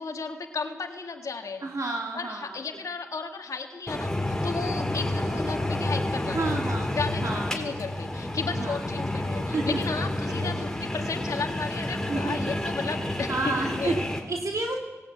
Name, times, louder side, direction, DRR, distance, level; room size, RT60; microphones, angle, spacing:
voice 1, 0.0-4.1 4.4-6.6 6.9-7.2 7.5-14.0, left 4 dB, 80° left, 4 dB, 1.9 m, -34 dB
voice 2, 1.6-2.6 6.3-7.5 8.6-8.8 9.5-9.8 10.3-10.5 12.1-12.4 13.3-14.8, right 3 dB, 70° right, 1 dB, 2.2 m, -30 dB
sound 1, 3.9-14.2, left 1 dB, 10° left, 4.3 m, -29 dB
19.0 x 16.5 x 9.2 m, 1.2 s
cardioid pair, 45°, 6 cm